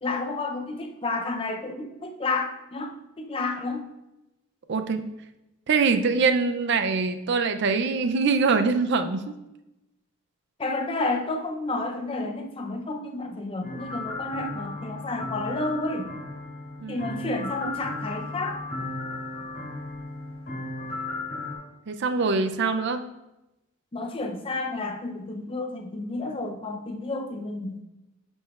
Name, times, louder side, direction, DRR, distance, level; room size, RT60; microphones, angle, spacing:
voice 1, 0.0-3.8 10.6-16.1 16.9-18.6 23.9-27.8, left 2 dB, 25° left, 4 dB, 0.5 m, -31 dB
voice 2, 4.7-5.0 5.7-9.4 16.8-17.4 21.9-23.1, right 4 dB, 55° right, 9 dB, 0.4 m, -24 dB
sound 1, 13.6-21.5, left 2 dB, 45° left, 1.9 m, -35 dB
8.7 x 5.4 x 2.3 m, 0.96 s
head